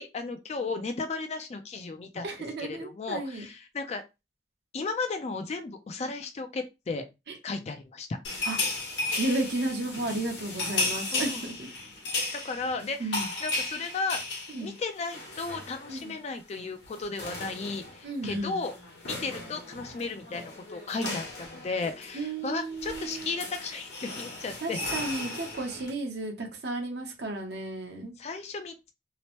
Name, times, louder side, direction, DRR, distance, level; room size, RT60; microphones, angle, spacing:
voice 1, 0.0-2.3 2.6-4.0 4.7-7.0 7.4-8.1 11.1-11.5 12.3-14.2 14.6-18.7 19.1-24.8 28.2-28.9, left 4 dB, 35° left, 8 dB, 0.3 m, -35 dB
voice 2, 2.2-3.5 7.3-7.4 8.4-8.6 9.2-11.7 12.1-12.4 13.0-13.3 14.5-14.7 15.9-16.1 18.0-18.6 21.0-21.1 22.1-23.3 24.6-28.1, right 2 dB, 65° right, 2 dB, 0.8 m, -33 dB
sound 1, 8.2-16.1 16.4-16.6 16.8-25.9, left 3 dB, 75° left, 1.0 m, -35 dB
2.8 x 2.0 x 2.9 m, 0.25 s
head